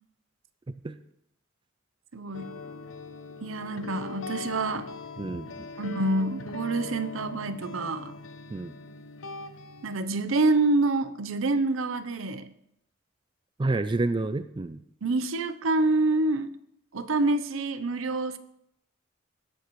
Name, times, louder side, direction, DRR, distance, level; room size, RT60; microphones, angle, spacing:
voice 1, 2.1-2.5 3.4-4.9 5.8-8.1 9.8-12.5 15.0-16.5 16.9-18.4, right 2 dB, 80° right, 12 dB, 0.7 m, -27 dB
sound 1, 2.3-9.9, left 3 dB, 80° left, 0.9 m, -41 dB
voice 2, 5.2-5.7 8.5-8.7 13.6-14.8, right 2 dB, 25° right, 11 dB, 0.4 m, -29 dB
17.5 x 7.6 x 3.1 m, 0.75 s
head